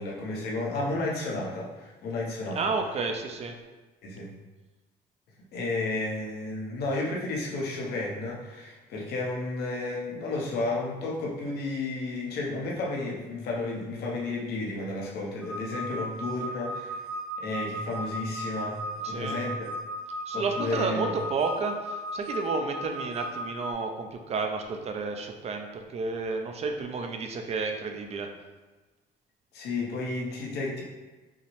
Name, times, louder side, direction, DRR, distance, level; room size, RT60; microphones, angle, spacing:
voice 1, 0.0-2.6 4.0-4.3 5.5-17.1 17.4-19.7 20.3-21.1 29.5-30.8, left 2 dB, 75° left, -2 dB, 0.9 m, -32 dB
voice 2, 2.5-3.6 19.0-19.4 20.3-28.3, right 4 dB, 40° right, 4 dB, 0.5 m, -31 dB
sound 1, 15.4-23.7, equal, ahead, 0.7 m, -36 dB
5.6 x 2.0 x 3.2 m, 1.2 s
cardioid pair, 110°, 17 cm